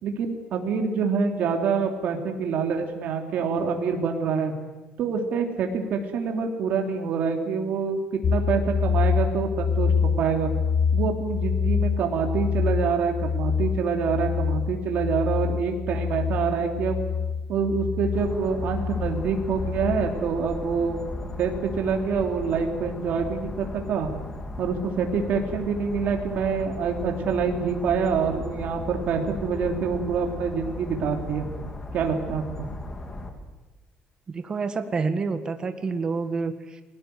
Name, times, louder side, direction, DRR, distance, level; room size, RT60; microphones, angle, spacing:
voice 1, 0.0-4.5 5.0-9.9 10.2-10.5 10.9-17.0 17.5-24.1 24.6-31.5 31.9-32.7, right 5 dB, 60° right, 3 dB, 3.2 m, -26 dB
sound 1, 8.2-20.1, left 6 dB, 35° left, 1.3 m, -26 dB
sound 2, 18.1-33.3, left 2 dB, 20° left, 2.7 m, -37 dB
voice 2, 34.3-36.8, right 4 dB, 25° right, 8 dB, 1.7 m, -28 dB
30.0 x 20.5 x 7.9 m, 1.2 s
cardioid pair, 155°, 3 cm